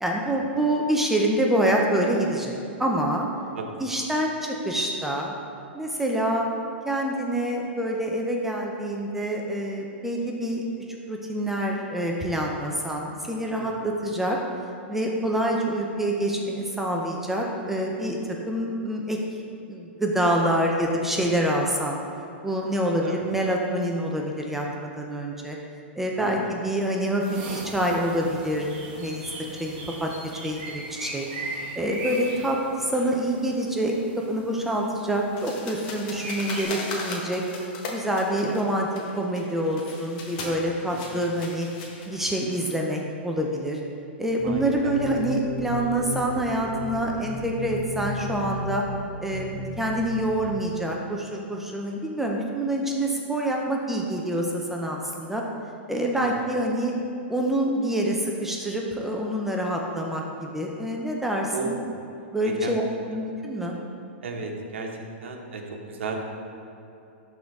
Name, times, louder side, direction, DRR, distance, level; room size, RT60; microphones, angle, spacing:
voice 1, 0.0-3.3 3.8-5.3 5.7-6.5 6.8-14.4 14.9-18.2 18.5-19.2 19.7-22.0 22.4-25.6 26.0-28.7 29.0-29.2 29.6-30.1 30.4-31.3 31.7-33.9 34.3-37.4 37.9-38.9 39.2-41.7 42.1-43.8 44.2-48.8 49.2-55.4 55.9-57.0 57.3-61.8 62.3-62.8 63.1-63.8, right 1 dB, 5° right, -1 dB, 0.5 m, -26 dB
voice 2, 13.6-13.9 23.0-23.2 26.2-26.5 32.3-32.5 41.1-41.2 44.4-44.9 56.1-56.3 61.5-61.7 62.4-62.8 64.2-64.9 65.2-66.2, right 4 dB, 80° right, 2 dB, 1.1 m, -34 dB
sound 1, 27.2-36.6, right 2 dB, 40° right, 1.6 m, -39 dB
sound 2, 35.4-42.7, left 3 dB, 45° left, 1.1 m, -38 dB
sound 3, 44.4-50.5, equal, 25° left, 1.4 m, -35 dB
11.5 x 3.9 x 3.5 m, 2.7 s
hypercardioid pair, 150°, 7 cm